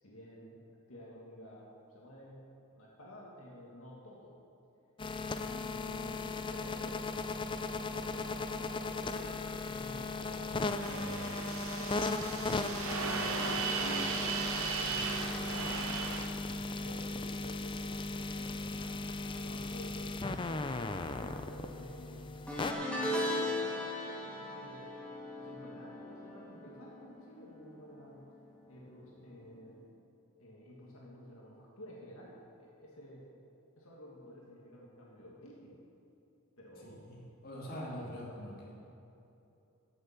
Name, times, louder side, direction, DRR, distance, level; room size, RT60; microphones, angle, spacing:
voice 1, 0.0-0.6 0.9-2.5 2.8-4.3 5.4-6.2 6.5-7.3 7.9-9.3 9.7-11.3 11.7-12.4 13.0-15.9 16.5-19.0 19.4-20.0 20.4-22.2 22.7-24.9 25.4-28.2 28.7-29.8 30.4-32.3 32.6-33.3 33.8-35.8 36.6-37.0, equal, 75° left, -4 dB, 1.8 m, -51 dB
sound 1, 5.0-22.7, left 3 dB, 20° left, 0.4 m, -37 dB
sound 2, 10.8-16.3, right 4 dB, 70° right, 0.9 m, -36 dB
sound 3, 22.5-27.9 28.1-28.5 29.7-29.8, left 1 dB, 5° left, 1.6 m, -38 dB
voice 2, 36.8-38.7, equal, 40° left, -5 dB, 2.5 m, -44 dB
14.5 x 6.8 x 5.8 m, 2.9 s
head